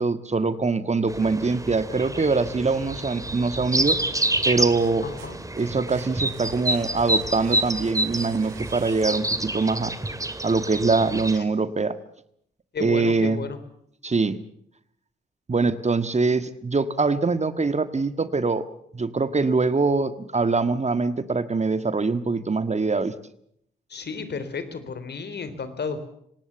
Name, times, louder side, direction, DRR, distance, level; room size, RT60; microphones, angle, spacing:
voice 1, 0.0-4.0 4.4-5.0 5.5-9.9 10.4-12.0 12.8-13.4 14.0-14.4 15.5-18.7 18.9-23.1, right 4 dB, 30° right, 12 dB, 1.7 m, -23 dB
sound 1, 1.1-11.4, right 1 dB, 15° right, 2.2 m, -28 dB
sound 2, 4.8-9.5, right 11 dB, 85° right, 1.4 m, -46 dB
voice 2, 5.0-5.4 11.3-11.5 12.7-13.6 23.9-26.0, left 5 dB, 55° left, 11 dB, 3.6 m, -32 dB
26.0 x 19.0 x 7.0 m, 0.71 s
hypercardioid pair, 40°, 21 cm